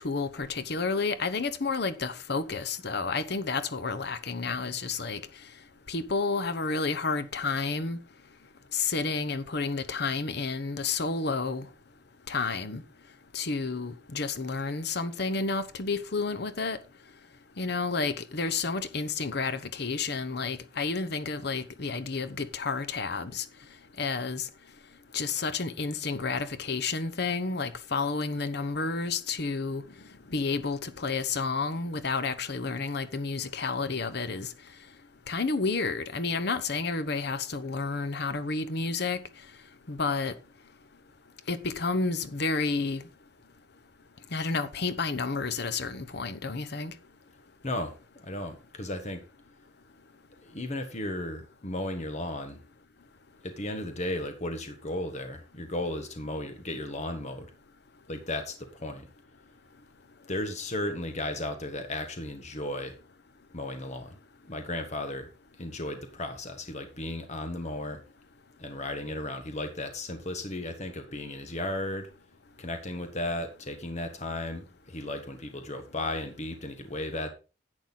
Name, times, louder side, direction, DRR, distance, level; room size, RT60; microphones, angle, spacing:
voice 1, 0.0-5.2 5.9-8.0 8.7-11.7 12.3-12.8 13.3-16.8 17.6-23.4 24.0-24.5 25.1-29.8 30.3-34.5 35.3-39.2 39.9-40.3 41.5-43.0 44.3-46.9, left 4 dB, 60° left, 1.0 m, -30 dB
voice 2, 47.6-49.2 50.4-52.6 53.4-57.5 58.1-59.1 60.3-63.0 63.5-64.2 64.4-65.3 65.6-68.0 68.6-72.1 72.6-77.3, left 1 dB, 40° left, 1.4 m, -35 dB
11.0 x 8.0 x 3.9 m
head